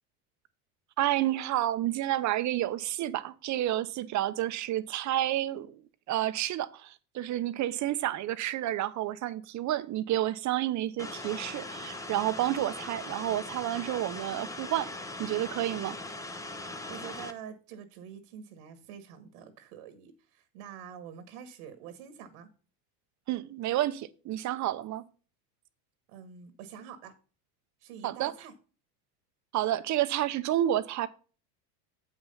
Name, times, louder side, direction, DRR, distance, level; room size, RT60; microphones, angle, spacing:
voice 1, 1.0-5.8 6.1-14.9 15.2-16.0 23.3-25.0 28.0-28.3 29.5-31.1, right 13 dB, 40° right, 0.7 m, -30 dB
sound 1, 11.0-17.3, left 2 dB, 5° left, 0.7 m, -40 dB
voice 2, 16.9-22.5 26.1-27.1 27.8-28.5, right 8 dB, 75° right, 1.4 m, -46 dB
7.8 x 5.7 x 5.4 m
supercardioid pair, 110°, 46 cm